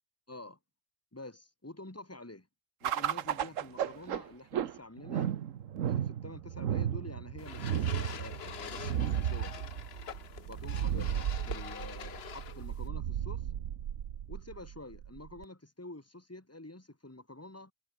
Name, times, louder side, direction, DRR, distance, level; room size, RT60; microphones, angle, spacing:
voice 1, 0.3-0.6 1.1-2.5 2.8-5.3 5.9-9.7 10.5-13.5 14.3-17.7, left 2 dB, 10° left, 2.3 m, -48 dB
sound 1, 2.8-15.4, right 10 dB, 75° right, 1.3 m, -34 dB
sound 2, 7.4-12.9, left 8 dB, 55° left, 1.1 m, -45 dB
omnidirectional pair, 1.4 m